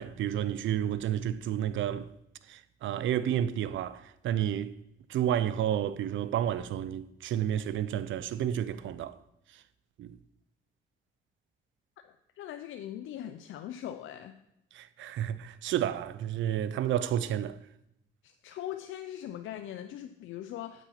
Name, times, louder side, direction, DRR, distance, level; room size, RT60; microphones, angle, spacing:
voice 1, 0.0-2.1 2.5-4.7 5.1-9.1 10.0-10.1 14.7-17.6, right 10 dB, 75° right, 0.6 m, -31 dB
voice 2, 12.0-14.4 18.2-20.8, left 11 dB, 80° left, 0.6 m, -41 dB
8.3 x 6.1 x 5.7 m
cardioid pair, 90°, 20 cm